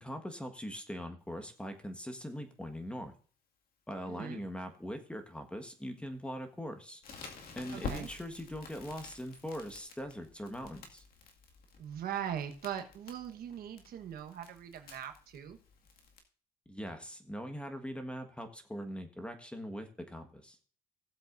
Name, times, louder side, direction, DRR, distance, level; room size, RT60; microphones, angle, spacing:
voice 1, 0.0-3.1 3.9-7.0 7.5-11.0 16.7-20.6, equal, 5° left, 7 dB, 1.4 m, -41 dB
voice 2, 4.1-4.4 7.7-8.1 11.8-15.6, right 9 dB, 60° right, 7 dB, 1.2 m, -40 dB
Crackle, 7.0-16.2, left 4 dB, 60° left, 2.1 m, -48 dB
17.0 x 7.6 x 2.6 m, 0.41 s
cardioid pair, 110°, 17 cm